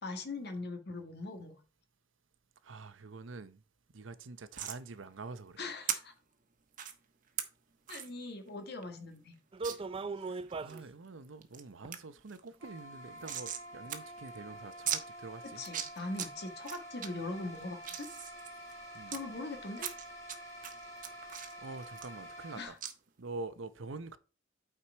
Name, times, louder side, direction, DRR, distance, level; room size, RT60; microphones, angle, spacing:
voice 1, 0.0-1.6 5.6-6.1 7.9-9.3 9.7-9.8 15.6-18.1 19.1-19.9 22.6-22.7, left 2 dB, 60° left, 1.8 m, -41 dB
voice 2, 2.6-3.6 3.9-5.6 10.2-15.6 18.9-19.2 21.6-22.8 23.2-24.2, right 3 dB, 85° right, 0.7 m, -46 dB
sound 1, 4.5-4.8 5.9-6.0 6.7-6.9 7.4-7.5 7.9-8.1 8.5-8.6 8.8-8.9 9.6-9.8 10.3-10.8 11.2-11.6 11.9-12.0 12.3-13.6 13.9-14.0 14.3-14.4 14.9-15.0 15.6-16.3 16.6-17.1 17.5-19.2 19.8-20.4 20.6-22.5 22.8-22.9, right 9 dB, 45° right, 1.1 m, -38 dB
sound 2, 9.5-10.8 11.8-11.9 12.6-12.7 13.2-13.3 13.9-14.0 14.5-14.7 15.0-15.1, right 4 dB, 30° right, 0.4 m, -38 dB
sound 3, 12.6-22.7, right 1 dB, 15° left, 4.4 m, -48 dB
8.8 x 4.8 x 4.5 m
head